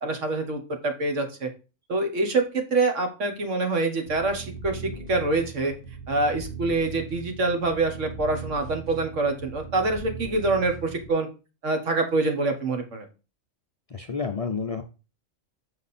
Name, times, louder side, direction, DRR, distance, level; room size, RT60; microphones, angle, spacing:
voice 1, 0.0-1.5 1.9-5.7 6.1-11.3 11.6-13.1, right 2 dB, 75° right, 4 dB, 1.7 m, -25 dB
sound 1, 4.1-11.1, right 4 dB, 45° right, 1.7 m, -39 dB
voice 2, 13.9-14.8, left 5 dB, 45° left, 4 dB, 0.5 m, -29 dB
6.5 x 5.1 x 4.2 m, 0.31 s
omnidirectional pair, 1.3 m